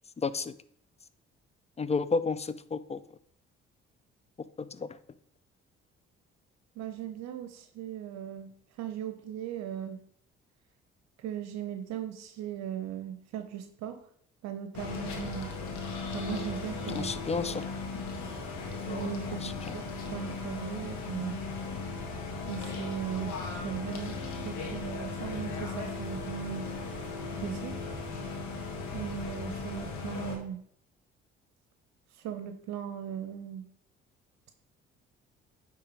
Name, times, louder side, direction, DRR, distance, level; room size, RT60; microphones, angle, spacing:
voice 1, 0.2-0.5 1.8-3.0 4.7-4.9 16.9-17.6 19.3-19.7, left 4 dB, 20° left, 15 dB, 0.5 m, -31 dB
voice 2, 6.8-10.0 11.2-14.0 14.4-15.5 16.1-17.1 18.9-19.8 20.1-21.4 22.5-23.4 23.6-27.0 27.4-28.0 28.9-30.6 32.1-33.7, right 10 dB, 65° right, 9 dB, 0.7 m, -38 dB
sound 1, 14.7-30.4, left 4 dB, 70° left, 1.6 m, -37 dB
9.3 x 3.5 x 4.7 m, 0.66 s
hypercardioid pair, 55°, 29 cm